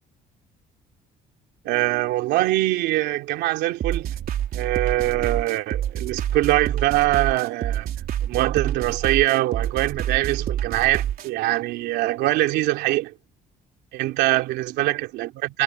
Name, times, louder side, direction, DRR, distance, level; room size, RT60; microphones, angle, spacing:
voice 1, 1.6-4.1 4.5-7.9 8.2-13.1 13.9-15.6, right 17 dB, 90° right, 2.9 m, -23 dB
sound 1, 3.8-11.3, right 10 dB, 60° right, 3.5 m, -27 dB
cardioid pair, 110°, 17 cm